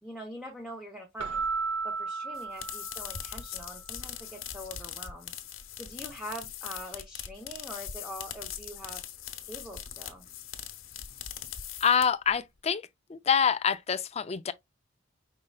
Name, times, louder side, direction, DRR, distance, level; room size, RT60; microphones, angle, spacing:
voice 1, 0.0-1.4 1.8-5.3 5.7-9.0 9.4-10.3, equal, 5° right, 0.9 m, -43 dB
Keyboard (musical), 1.2-3.6, right 4 dB, 80° right, 0.6 m, -34 dB
sound 1, 2.3-12.3, left 10 dB, 85° left, 0.9 m, -41 dB
voice 2, 11.8-12.8 13.1-14.5, left 7 dB, 30° left, 0.4 m, -26 dB
5.4 x 3.7 x 2.3 m
head